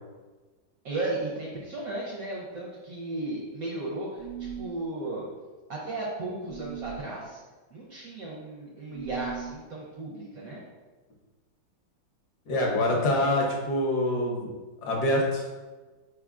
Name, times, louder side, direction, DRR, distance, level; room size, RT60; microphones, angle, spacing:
voice 1, 0.8-4.3 4.6-5.2 5.7-7.4 7.7-10.6 13.2-13.3, right 2 dB, 65° right, -4 dB, 0.8 m, -35 dB
sound 1, 4.2-4.8 6.5-7.0 8.9-9.6, right 9 dB, 85° right, 1.4 m, -38 dB
voice 2, 12.5-14.5 14.8-15.4, left 1 dB, 65° left, -1 dB, 1.2 m, -25 dB
4.7 x 3.6 x 2.3 m, 1.3 s
omnidirectional pair, 2.2 m